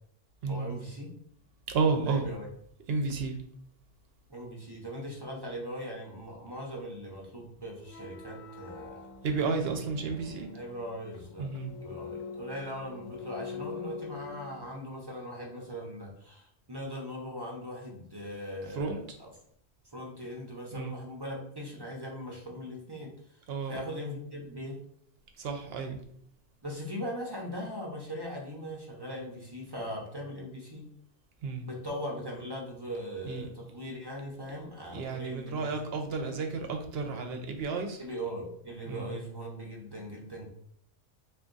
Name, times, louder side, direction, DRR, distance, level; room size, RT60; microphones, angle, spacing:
voice 1, 0.5-1.1 1.9-2.5 4.3-9.0 10.5-11.5 11.8-19.3 19.9-24.8 26.6-30.9 31.6-35.7 38.0-40.5, equal, 25° right, -2 dB, 0.6 m, -40 dB
voice 2, 1.7-2.3 2.9-3.4 9.2-10.5 11.4-11.7 18.7-19.0 20.7-20.9 23.5-23.9 25.4-26.0 31.4-31.6 33.3-33.5 34.9-38.0 38.9-39.1, right 4 dB, 60° right, 4 dB, 0.8 m, -31 dB
sound 1, 7.8-14.7, left 5 dB, 85° left, 1.0 m, -44 dB
3.5 x 2.5 x 3.9 m, 0.66 s
omnidirectional pair, 1.3 m